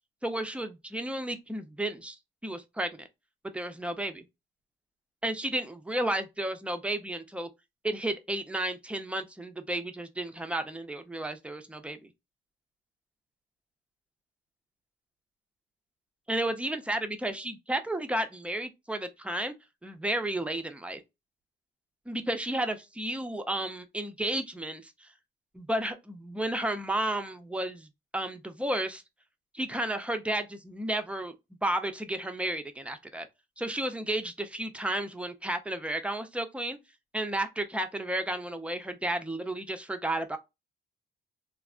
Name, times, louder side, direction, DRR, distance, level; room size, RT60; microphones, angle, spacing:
voice 1, 0.2-2.2 2.4-3.1 3.5-4.2 5.2-7.5 7.8-12.1 16.3-19.5 19.8-21.0 22.1-25.1 25.5-27.9 28.1-29.0 29.5-31.3 31.6-33.3 33.6-36.8 37.1-40.4, right 1 dB, 5° right, 0.5 m, -32 dB
3.3 x 2.0 x 2.4 m
cardioid pair, 90°, 20 cm